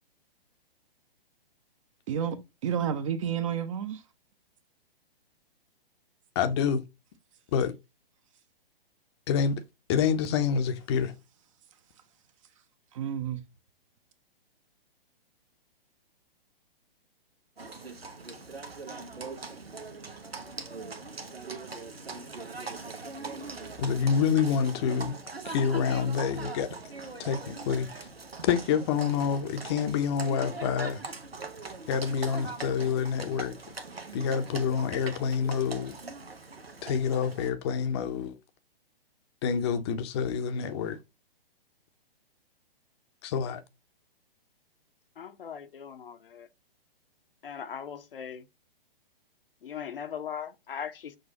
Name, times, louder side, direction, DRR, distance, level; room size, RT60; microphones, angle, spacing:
voice 1, 2.6-4.0 12.9-13.4, right 8 dB, 35° right, 0.6 m, -30 dB
voice 2, 6.4-6.8 7.5-7.7 9.3-9.6 9.9-11.1 23.8-25.2 25.4-26.7 27.2-27.9 28.5-31.0 31.9-33.6 34.1-36.0 36.8-38.3 39.4-41.0 43.2-43.6, left 7 dB, 30° left, 0.6 m, -27 dB
Livestock farm animals working animals, 17.6-37.5, right 3 dB, 85° right, 0.9 m, -41 dB
voice 3, 45.2-46.5 47.4-48.4 49.6-51.2, left 7 dB, 65° left, 0.7 m, -39 dB
6.3 x 2.3 x 2.8 m
figure-of-eight pair, 120°, 30 cm